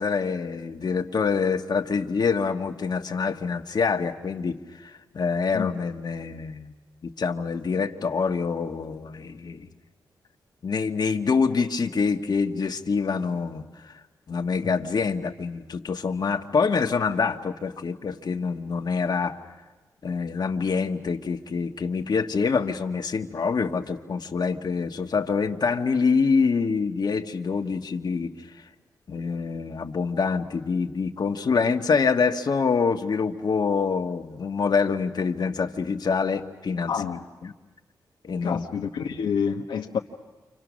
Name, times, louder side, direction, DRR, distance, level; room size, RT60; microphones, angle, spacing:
voice 1, 0.0-6.7 7.0-9.7 10.6-13.9 14.3-19.4 20.0-28.3 29.1-37.0 37.4-37.5 38.2-38.6 39.0-39.2, left 5 dB, 60° left, 4 dB, 1.5 m, -26 dB
voice 2, 36.9-37.2 38.4-40.0, left 6 dB, 85° left, 1 dB, 1.2 m, -28 dB
29.0 x 26.5 x 6.3 m, 1.2 s
cardioid pair, 55°, 8 cm